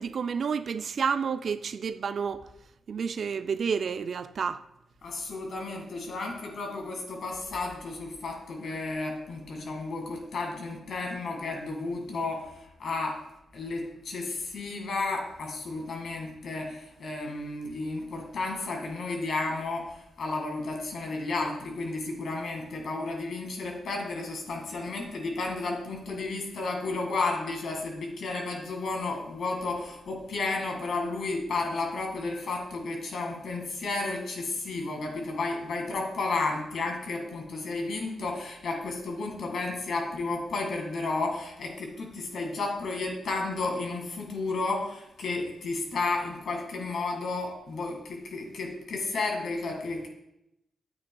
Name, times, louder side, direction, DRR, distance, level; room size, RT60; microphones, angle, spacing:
voice 1, 0.0-2.4 2.9-4.6, right 6 dB, 65° right, 0.4 m, -30 dB
voice 2, 5.0-13.2 13.5-50.1, left 3 dB, 75° left, 1.9 m, -32 dB
10.0 x 8.4 x 2.3 m
cardioid pair, 60°, 0 cm